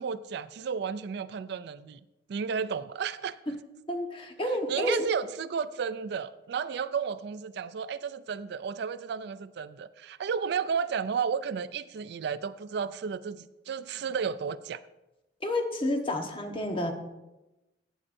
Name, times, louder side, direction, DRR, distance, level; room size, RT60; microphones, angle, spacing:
voice 1, 0.0-2.0 2.3-3.6 4.5-14.8, right 6 dB, 65° right, 15 dB, 0.3 m, -33 dB
voice 2, 3.9-5.0 15.4-16.9, left 1 dB, 30° left, 3 dB, 1.1 m, -30 dB
15.0 x 8.7 x 2.6 m, 1.0 s
head